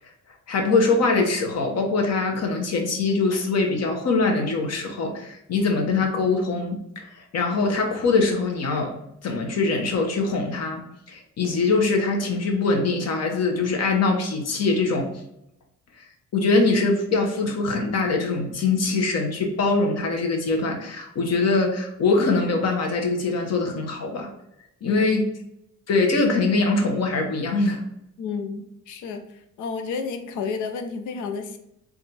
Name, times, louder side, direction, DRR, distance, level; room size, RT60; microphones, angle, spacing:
voice 1, 0.5-8.9 9.2-15.1 16.3-24.3 24.8-25.2 25.9-27.8, left 3 dB, 55° left, 2 dB, 0.9 m, -23 dB
voice 2, 28.2-29.2 29.6-31.6, left 5 dB, 80° left, 7 dB, 0.6 m, -31 dB
3.5 x 2.3 x 4.1 m, 0.81 s
cardioid pair, 90°, 30 cm